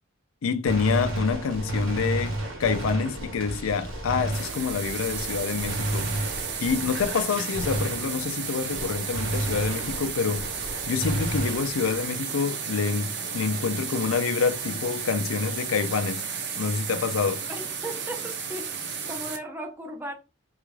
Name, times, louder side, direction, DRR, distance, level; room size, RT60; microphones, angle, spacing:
voice 1, 0.4-6.4 6.6-10.5 10.8-16.3 16.6-17.4, left 5 dB, 85° left, 0.4 m, -27 dB
Gunshot gunfire, 0.7-8.5 8.7-12.1, right 1 dB, 75° right, 1.0 m, -32 dB
sound 1, 4.3-19.4, right 6 dB, 55° right, 0.6 m, -33 dB
voice 2, 17.5-18.7 19.1-20.2, right 1 dB, 10° right, 0.6 m, -36 dB
3.4 x 2.3 x 3.2 m
head